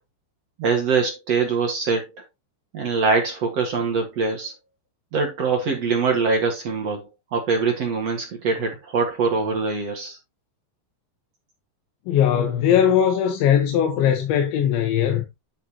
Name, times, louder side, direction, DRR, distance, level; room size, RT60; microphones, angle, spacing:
voice 1, 0.6-2.0 2.7-4.5 5.1-10.2, right 4 dB, 50° right, 2.2 m, -23 dB
voice 2, 12.1-15.3, left 9 dB, 85° left, 3.7 m, -19 dB
10.5 x 6.5 x 3.0 m
omnidirectional pair, 5.1 m